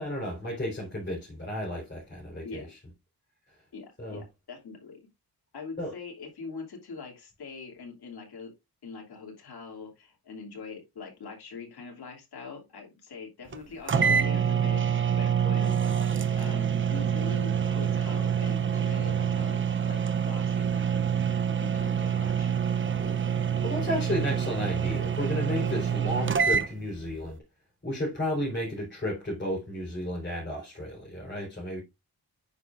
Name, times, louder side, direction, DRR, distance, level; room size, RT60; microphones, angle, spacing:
voice 1, 0.0-2.8 4.0-4.2 5.8-5.9 15.4-15.7 23.0-27.4 27.8-31.8, left 1 dB, 30° left, 4.3 m, -33 dB
voice 2, 3.7-5.1 5.5-8.5 8.8-14.8 15.1-16.1 16.4-22.9, left 4 dB, 85° left, 2.9 m, -43 dB
sound 1, 13.5-13.6 13.9-26.7, right 8 dB, 30° right, 0.7 m, -26 dB
9.5 x 6.6 x 2.5 m
wide cardioid pair, 135°, 38 cm